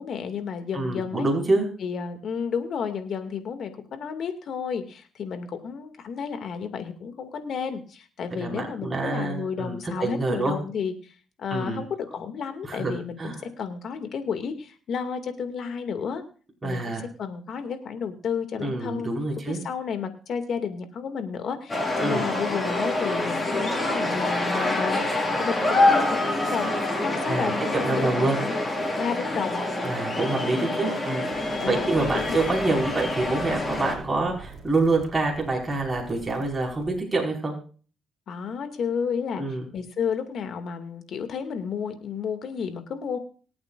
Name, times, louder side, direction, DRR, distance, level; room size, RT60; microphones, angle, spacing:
voice 1, 0.0-1.3 1.8-11.1 11.4-16.2 16.6-19.1 19.5-28.6 29.0-29.6 30.6-31.0 31.6-32.4 32.7-32.8 38.3-39.4 39.7-43.2, left 6 dB, 65° left, 7 dB, 2.3 m, -32 dB
voice 2, 0.7-1.7 8.3-10.6 11.5-11.8 12.7-12.9 13.2-13.4 16.6-17.0 18.6-19.6 22.0-22.3 27.3-27.5 27.8-28.4 29.8-37.5 39.4-39.7, right 2 dB, 20° right, -2 dB, 5.3 m, -26 dB
sound 1, 21.7-33.9, left 2 dB, 20° left, 5.2 m, -26 dB
sound 2, 31.3-37.0, right 2 dB, 50° right, 3.6 m, -42 dB
26.0 x 8.7 x 2.6 m, 0.39 s
cardioid pair, 90°, 0 cm